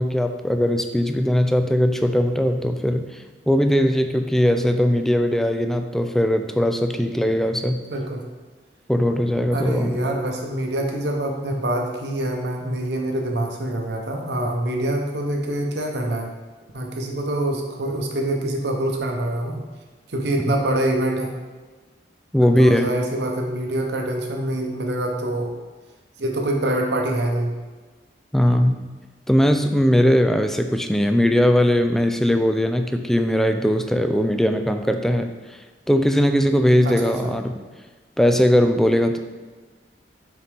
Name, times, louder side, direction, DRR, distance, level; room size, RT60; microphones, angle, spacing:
voice 1, 0.0-3.2 3.5-7.8 8.9-10.1 20.5-20.6 22.3-22.9 28.3-28.9 29.3-35.6 35.9-37.6 38.2-39.2, equal, ahead, 7 dB, 0.3 m, -19 dB
voice 2, 7.9-8.2 9.5-16.3 16.7-19.6 20.1-21.3 22.4-25.5 26.2-27.5 36.8-37.3, right 1 dB, 70° right, 1 dB, 0.9 m, -25 dB
6.8 x 4.3 x 3.4 m, 1.4 s
head